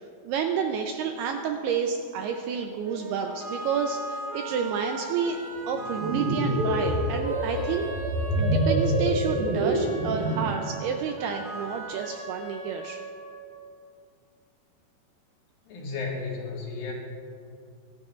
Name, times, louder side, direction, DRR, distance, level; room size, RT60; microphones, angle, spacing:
voice 1, 0.2-5.4 5.7-7.9 8.3-13.0, right 6 dB, 80° right, 4 dB, 2.4 m, -30 dB
sound 1, 2.8-13.8, right 2 dB, 50° right, 4.0 m, -39 dB
sound 2, 5.8-10.6, right 1 dB, 65° right, 3.0 m, -26 dB
voice 2, 15.7-16.9, left 4 dB, 60° left, -3 dB, 3.1 m, -33 dB
25.0 x 13.0 x 2.5 m, 2.4 s
omnidirectional pair, 5.2 m